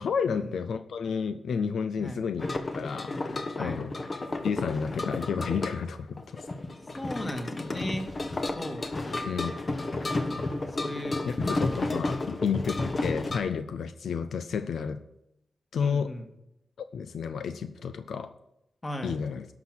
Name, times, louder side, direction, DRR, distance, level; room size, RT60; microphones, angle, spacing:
voice 1, 0.0-2.5 2.8-4.0 4.4-6.5 9.3-9.5 11.3-15.0 15.7-16.1 16.8-18.3 19.0-19.5, left 6 dB, 85° left, 10 dB, 0.5 m, -31 dB
sound 1, 2.4-13.4, left 2 dB, 40° left, 1.2 m, -32 dB
voice 2, 7.0-8.1 8.6-9.2 10.3-10.4 10.8-11.2 11.5-11.8 15.8-16.3 18.8-19.2, left 1 dB, 25° left, 3 dB, 2.0 m, -37 dB
11.5 x 6.0 x 6.2 m, 0.83 s
cardioid pair, 70°, 0 cm